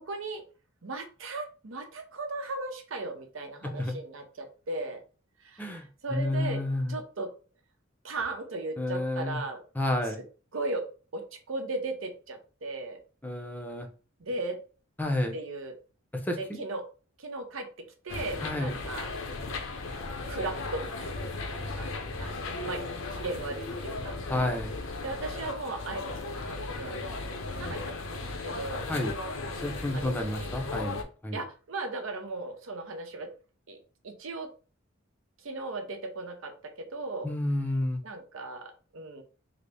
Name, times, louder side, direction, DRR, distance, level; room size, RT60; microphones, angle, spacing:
voice 1, 0.1-0.4 0.8-5.0 5.4-5.7 6.0-6.6 6.9-7.3 8.0-9.6 10.0-10.1 10.5-10.9 11.1-13.0 14.2-14.6 15.3-15.7 16.4-16.8 17.2-17.7 18.0-19.1 20.3-21.2 21.5-21.9 22.2-22.8 23.1-24.2 25.0-27.0 27.4-28.9 29.9-30.1 30.4-30.5 31.3-33.3 33.7-33.8 34.0-34.5 35.4-37.3 38.0-39.2, right 2 dB, 75° right, 4 dB, 0.7 m, -37 dB
voice 2, 3.6-4.0 5.6-7.0 8.8-9.4 9.7-10.2 13.2-13.9 15.0-15.3 16.1-16.6 18.4-18.7 24.3-24.7 28.9-29.1 29.6-31.4 37.2-38.0, left 1 dB, 10° left, 4 dB, 0.5 m, -30 dB
sound 1, 18.1-31.0, left 3 dB, 75° left, 0.6 m, -36 dB
3.9 x 2.0 x 3.3 m, 0.37 s
head